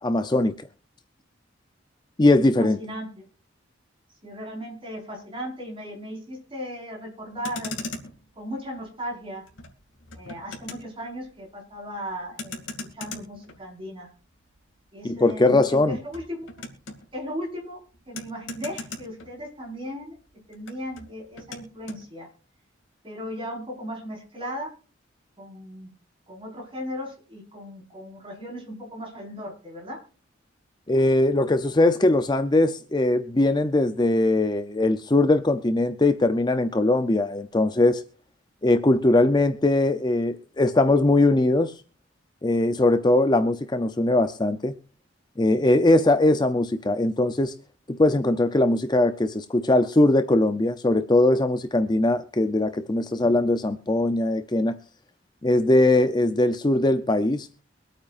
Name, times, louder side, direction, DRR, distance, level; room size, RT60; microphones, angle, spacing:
voice 1, 0.0-0.7 2.2-2.8 15.0-16.0 30.9-38.0 38.6-41.7 42.4-44.7 45.4-47.5 47.9-54.8 55.4-57.5, left 2 dB, 20° left, 0.6 m, -21 dB
voice 2, 2.6-3.2 4.2-7.7 8.4-9.4 10.1-12.6 12.9-14.1 14.9-16.5 17.1-17.8 18.1-20.2 20.5-22.3 23.0-24.7 25.4-25.9 26.3-30.0, equal, 30° right, 4.9 m, -36 dB
Motor vehicle (road), 7.2-19.9 20.1-22.0, left 3 dB, 75° left, 2.5 m, -41 dB
24.0 x 8.8 x 2.5 m
head